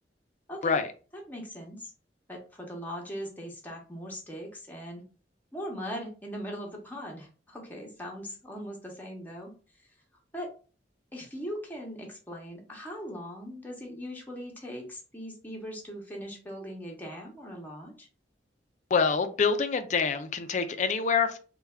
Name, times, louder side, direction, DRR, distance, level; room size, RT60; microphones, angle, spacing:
voice 1, 0.5-0.8 1.1-1.9 2.3-5.0 5.5-9.5 9.8-9.9 10.3-10.5 11.1-18.1, equal, 10° left, 0.7 m, -40 dB
voice 2, 18.9-21.4, left 5 dB, 45° left, 0.4 m, -26 dB
3.3 x 2.2 x 3.4 m
head